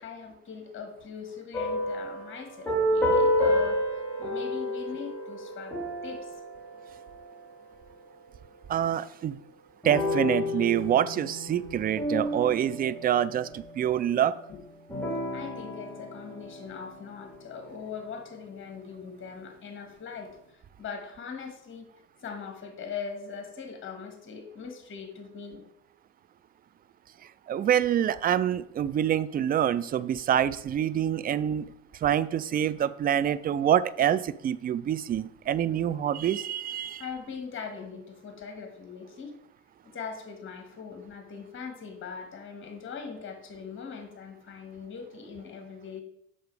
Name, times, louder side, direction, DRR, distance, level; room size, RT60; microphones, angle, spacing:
voice 1, 0.0-5.8 6.0-6.3 14.5-14.6 15.3-21.9 22.2-25.6 37.0-39.4 39.9-46.0, left 6 dB, 30° left, 4 dB, 1.9 m, -41 dB
sound 1, 1.5-7.5 9.8-13.6 14.9-17.6, left 1 dB, 5° left, 3.3 m, -30 dB
voice 2, 8.7-9.4 9.8-14.4 27.5-31.6 32.0-37.0, right 10 dB, 25° right, 16 dB, 0.4 m, -26 dB
6.7 x 5.6 x 4.8 m, 0.75 s
hypercardioid pair, 70°, 38 cm